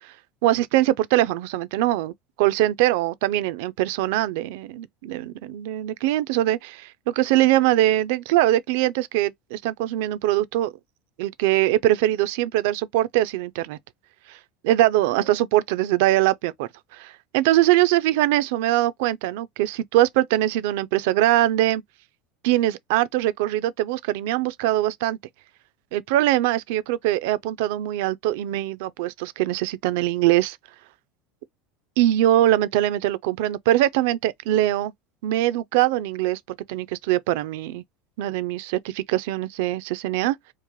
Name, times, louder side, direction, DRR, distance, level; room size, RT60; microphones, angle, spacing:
voice 1, 0.4-2.1 2.4-10.7 11.2-13.8 14.3-14.4 14.6-21.8 22.4-25.2 25.9-30.6 32.0-34.9 35.2-36.4 36.7-37.8 38.2-40.4, right 15 dB, 75° right, 0.4 m, -22 dB
3.2 x 2.5 x 3.7 m
supercardioid pair, 95°, 0 cm